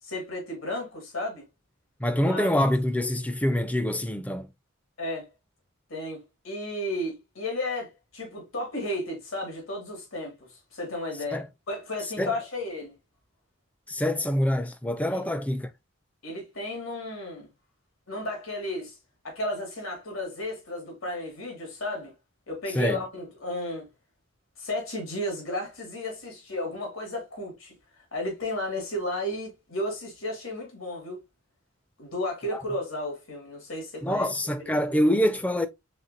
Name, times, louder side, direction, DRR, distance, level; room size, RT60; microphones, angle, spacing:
voice 1, 0.0-1.4 2.1-2.5 5.0-5.3 5.9-13.0 15.1-15.3 16.2-17.5 18.1-19.0 19.2-22.1 22.5-23.9 24.6-31.2 32.0-34.3 34.6-35.0, left 1 dB, 90° left, 2.0 m, -33 dB
voice 2, 2.0-4.5 11.3-11.5 12.2-12.3 13.9-15.7 22.7-23.0 32.5-32.6 34.0-35.7, equal, 5° left, 0.3 m, -25 dB
4.2 x 3.6 x 2.5 m
head